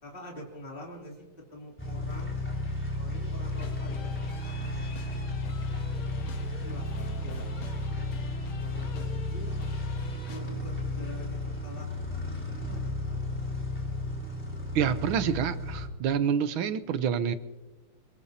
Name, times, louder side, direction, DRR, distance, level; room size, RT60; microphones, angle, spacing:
voice 1, 0.0-1.3 1.5-2.5 2.8-4.1 4.7-5.4 6.6-7.7 8.5-9.6 10.0-13.4, left 1 dB, 25° left, -2 dB, 3.2 m, -46 dB
sound 1, 1.8-15.9, left 2 dB, 5° left, 3.6 m, -33 dB
sound 2, 3.5-10.4, left 3 dB, 80° left, 2.3 m, -46 dB
voice 2, 14.7-17.3, right 8 dB, 80° right, 12 dB, 1.7 m, -27 dB
23.0 x 21.0 x 2.8 m, 1.2 s
omnidirectional pair, 2.2 m